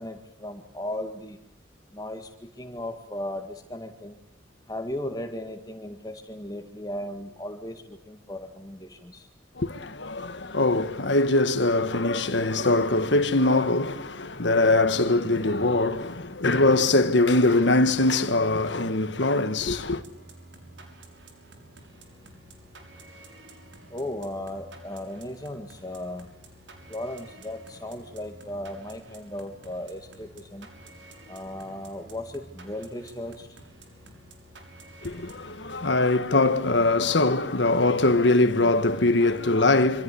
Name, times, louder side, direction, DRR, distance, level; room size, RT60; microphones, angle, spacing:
voice 1, 0.0-1.4 1.9-2.3 2.6-4.2 4.7-9.3 23.9-26.3 26.9-30.7 31.3-33.5, left 1 dB, 20° left, 2.0 m, -36 dB
voice 2, 9.5-20.0 35.0-40.0, left 2 dB, 75° left, 1.6 m, -22 dB
sound 1, 19.8-36.1, right 2 dB, 80° right, 6.2 m, -50 dB
27.0 x 26.0 x 8.5 m
head